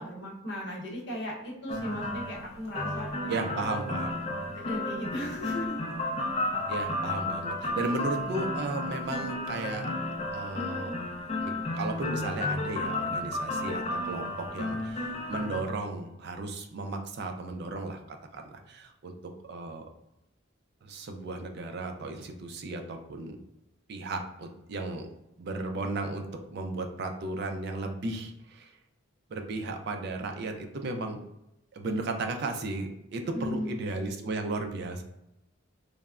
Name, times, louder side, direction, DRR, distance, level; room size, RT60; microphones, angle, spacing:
voice 1, 0.0-3.6 4.5-5.8 8.1-8.5 33.3-33.8, equal, 55° left, -3 dB, 0.8 m, -37 dB
sound 1, 1.7-15.6, left 2 dB, 30° left, 0.3 m, -33 dB
voice 2, 3.3-4.2 6.7-9.9 10.3-10.9 11.4-19.1 19.5-19.8 20.8-23.4 23.9-25.1 25.4-28.7 29.3-31.2 31.7-35.0, right 2 dB, 50° right, 5 dB, 0.3 m, -35 dB
3.2 x 2.0 x 2.3 m, 0.88 s
head